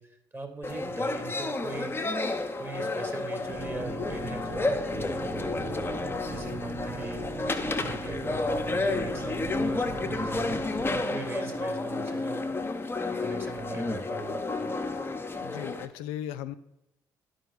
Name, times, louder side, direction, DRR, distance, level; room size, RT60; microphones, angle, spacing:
voice 1, 0.0-2.2 2.5-5.9 6.3-7.3 7.8-10.6 10.9-12.4 13.2-14.7, right 3 dB, 20° right, 6 dB, 1.8 m, -40 dB
sound 1, 0.6-15.9, left 2 dB, 20° left, 0.9 m, -31 dB
sound 2, 3.3-11.0, right 5 dB, 35° right, 0.8 m, -41 dB
voice 2, 15.4-16.5, left 11 dB, 75° left, 11 dB, 0.4 m, -36 dB
11.5 x 4.9 x 4.0 m, 0.84 s
hypercardioid pair, 50°, 11 cm